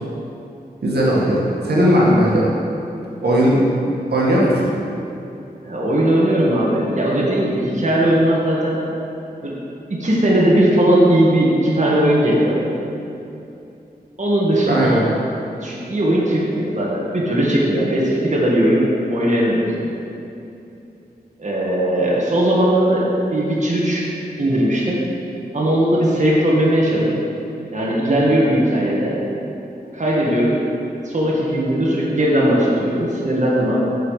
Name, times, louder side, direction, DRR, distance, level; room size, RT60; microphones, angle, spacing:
voice 1, 0.8-2.5 3.2-3.6 4.1-4.5 14.7-15.0, equal, 75° right, -6 dB, 2.0 m, -17 dB
voice 2, 5.6-8.8 9.4-12.6 14.2-15.1 15.6-20.0 21.4-24.0 24.4-25.0 25.5-27.1 27.7-29.2 29.9-30.6 31.0-33.8, right 1 dB, 45° right, -5 dB, 1.9 m, -18 dB
8.4 x 6.9 x 5.7 m, 2.8 s
wide cardioid pair, 80°, 17 cm